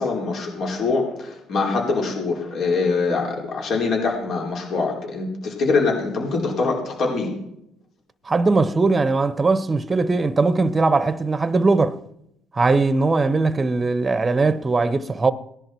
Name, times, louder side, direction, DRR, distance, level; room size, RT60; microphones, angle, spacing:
voice 1, 0.0-7.3, left 4 dB, 60° left, 4.4 m, -23 dB
voice 2, 8.2-12.0 12.5-15.3, right 3 dB, 25° right, 0.9 m, -20 dB
18.0 x 11.0 x 4.5 m
supercardioid pair, 85°, 0 cm